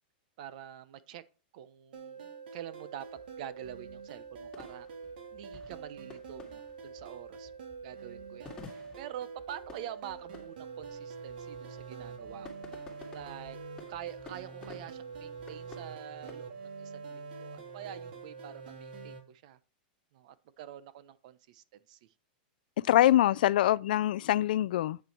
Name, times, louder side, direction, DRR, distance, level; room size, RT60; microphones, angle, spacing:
voice 1, 0.4-1.2 1.5-3.1 3.4-4.9 5.3-7.5 7.8-12.7 13.1-13.6 13.9-16.5 16.8-19.6 20.1-22.1, right 11 dB, 50° right, 0.9 m, -46 dB
sound 1, 1.9-19.2, right 5 dB, 75° right, 2.8 m, -45 dB
sound 2, 2.9-16.3, left 4 dB, 15° left, 2.2 m, -54 dB
voice 2, 22.8-25.0, left 13 dB, 65° left, 0.4 m, -24 dB
8.6 x 6.8 x 4.5 m
supercardioid pair, 160°, 5 cm